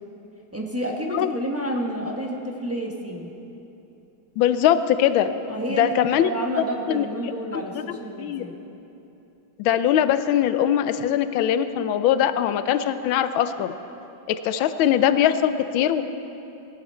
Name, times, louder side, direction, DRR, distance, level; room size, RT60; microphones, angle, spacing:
voice 1, 0.5-3.3 5.5-8.5, right 1 dB, 10° right, -1 dB, 0.8 m, -30 dB
voice 2, 4.4-5.3 5.7-6.3 6.6-7.1 7.7-8.4 9.6-13.7 14.3-16.0, left 10 dB, 85° left, 11 dB, 1.4 m, -21 dB
17.5 x 11.5 x 4.3 m, 2.9 s
omnidirectional pair, 2.1 m